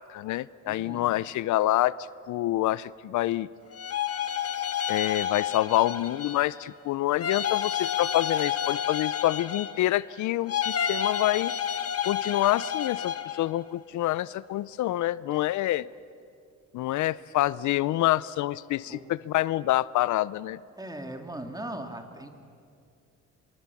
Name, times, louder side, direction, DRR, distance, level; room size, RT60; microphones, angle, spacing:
voice 1, 0.1-1.9 2.3-3.5 4.9-11.5 12.0-15.9 16.7-20.6, left 15 dB, 75° left, 19 dB, 0.5 m, -27 dB
voice 2, 0.6-1.1 15.3-15.4 18.9-19.0 20.8-22.3, right 1 dB, 10° right, 5 dB, 2.7 m, -39 dB
sound 1, 3.7-6.5 7.2-10.0 10.5-13.4, left 8 dB, 50° left, 1.4 m, -30 dB
25.0 x 23.5 x 7.2 m, 2.4 s
cardioid pair, 90°, 30 cm